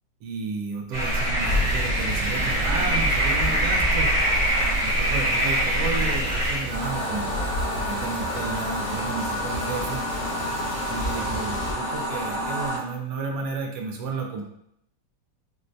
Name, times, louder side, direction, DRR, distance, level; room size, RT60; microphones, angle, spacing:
voice 1, 0.2-4.1 4.8-7.3 7.6-10.0 10.9-14.5, right 4 dB, 75° right, 2 dB, 1.1 m, -32 dB
sound 1, 0.9-6.6, right 1 dB, 40° right, 1.3 m, -23 dB
sound 2, 1.4-11.7, left 1 dB, 70° left, 1.3 m, -32 dB
sound 3, 6.7-12.8, equal, 50° left, 0.4 m, -29 dB
4.6 x 2.1 x 2.6 m, 0.75 s
omnidirectional pair, 1.9 m